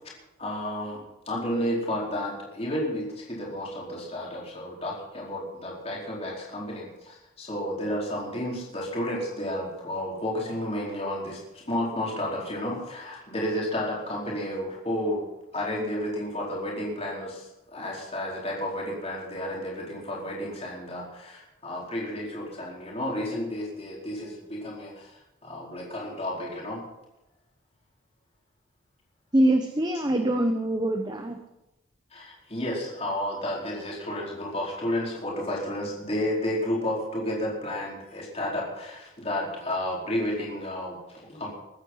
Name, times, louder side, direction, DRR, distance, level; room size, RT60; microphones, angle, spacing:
voice 1, 0.4-15.2 15.5-26.8 29.9-30.0 32.1-41.5, left 1 dB, 30° left, -4 dB, 4.5 m, -32 dB
voice 2, 29.3-31.4, right 1 dB, 20° right, 5 dB, 0.9 m, -24 dB
22.0 x 9.8 x 5.7 m, 0.94 s
head